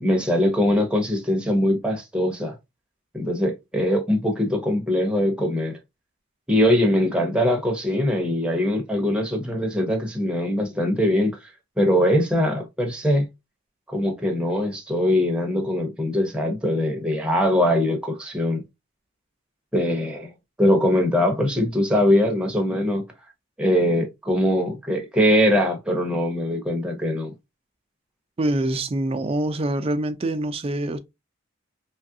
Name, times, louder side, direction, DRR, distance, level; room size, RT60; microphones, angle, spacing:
voice 1, 0.0-2.6 3.1-5.8 6.5-11.4 11.8-13.3 13.9-18.6 19.7-20.3 20.6-23.0 23.6-27.3, left 1 dB, 5° right, 0.7 m, -22 dB
voice 2, 28.4-31.0, right 1 dB, 30° right, 0.4 m, -25 dB
3.0 x 2.4 x 2.7 m
head